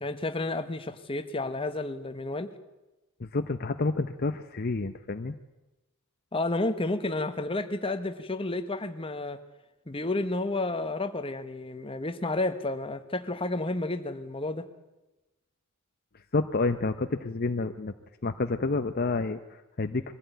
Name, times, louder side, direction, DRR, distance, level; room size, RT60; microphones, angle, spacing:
voice 1, 0.0-2.5 6.3-9.4 9.9-14.6, left 2 dB, 25° left, 8 dB, 1.3 m, -31 dB
voice 2, 3.2-5.3 16.3-17.9 18.2-20.0, left 3 dB, 45° left, 8 dB, 0.8 m, -29 dB
22.5 x 15.5 x 9.3 m, 1.0 s
head